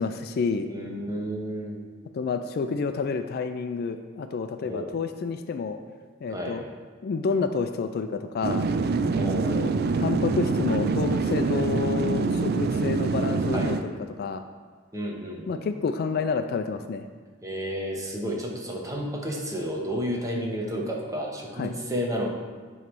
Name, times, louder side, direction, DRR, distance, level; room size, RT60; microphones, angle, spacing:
voice 1, 0.0-0.7 2.1-5.8 6.2-6.6 7.0-8.7 9.5-9.7 10.0-14.4 15.5-17.1 21.6-21.7, left 5 dB, 50° left, 8 dB, 0.3 m, -29 dB
voice 2, 0.7-1.8 4.6-4.9 6.3-6.6 9.1-9.7 13.5-13.7 14.9-15.7 17.4-22.3, equal, 15° right, -1 dB, 1.1 m, -31 dB
sound 1, 8.4-13.8, right 4 dB, 55° right, 0.4 m, -25 dB
9.5 x 3.2 x 5.2 m, 1.5 s
head